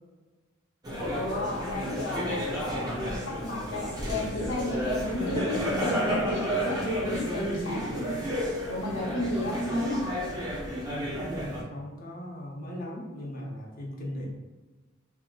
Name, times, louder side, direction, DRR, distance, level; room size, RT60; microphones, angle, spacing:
sound 1, 0.8-11.6, equal, 20° right, 0.6 m, -32 dB
voice 1, 1.1-8.1 8.7-10.1, left 1 dB, 80° left, -7 dB, 0.7 m, -32 dB
voice 2, 10.8-14.3, equal, 45° left, -3 dB, 0.7 m, -38 dB
3.6 x 2.8 x 2.3 m, 1.2 s
head